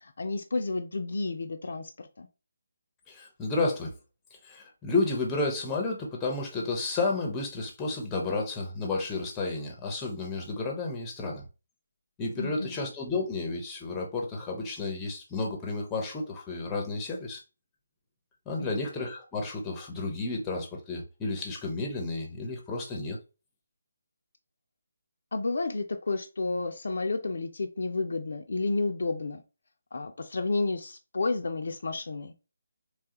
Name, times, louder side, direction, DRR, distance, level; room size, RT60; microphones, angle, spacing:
voice 1, 0.0-2.3 12.4-12.8 18.6-18.7 25.3-29.4 29.9-32.3, left 3 dB, 60° left, 0.4 m, -31 dB
voice 2, 3.1-3.9 4.4-11.4 12.2-17.4 18.5-23.2, left 3 dB, 15° left, 0.7 m, -31 dB
3.1 x 2.3 x 2.8 m
figure-of-eight pair, 150°, 0 cm